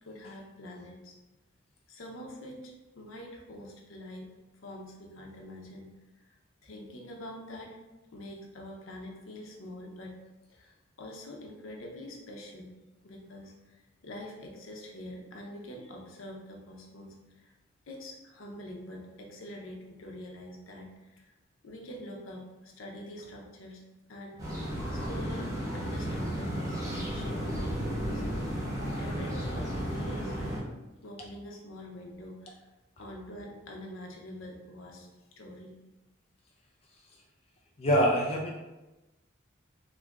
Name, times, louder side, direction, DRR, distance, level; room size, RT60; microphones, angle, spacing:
voice 1, 0.0-1.2 1.9-4.3 4.6-5.9 6.1-6.4 6.6-7.8 8.1-10.2 10.5-12.7 13.0-17.5 17.9-21.3 21.6-23.8 24.1-24.4 24.9-28.2 28.5-30.7 31.0-32.7 33.0-35.1 35.4-35.8, left 1 dB, 80° left, 0 dB, 0.7 m, -45 dB
sound 1, 24.4-30.6, equal, 15° right, 1.0 m, -33 dB
voice 2, 37.8-38.6, equal, 30° left, -1 dB, 0.3 m, -25 dB
3.0 x 2.5 x 3.4 m, 1.1 s
head